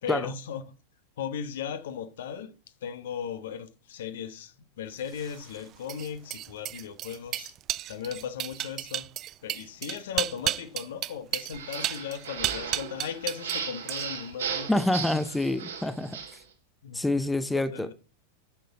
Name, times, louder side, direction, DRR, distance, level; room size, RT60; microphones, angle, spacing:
voice 1, 0.0-0.6 1.2-2.5 2.8-7.5 7.9-9.1 9.4-14.7 16.8-17.0 17.5-17.9, left 8 dB, 60° left, 0.9 m, -37 dB
sound 1, 5.1-13.6 13.9-14.3, right 13 dB, 35° right, 0.4 m, -33 dB
sound 2, 11.5-16.4, right 7 dB, 65° right, 2.2 m, -36 dB
voice 2, 14.7-16.2 16.9-17.9, left 2 dB, 5° left, 0.7 m, -27 dB
10.0 x 6.8 x 3.8 m
figure-of-eight pair, 90°, 0 cm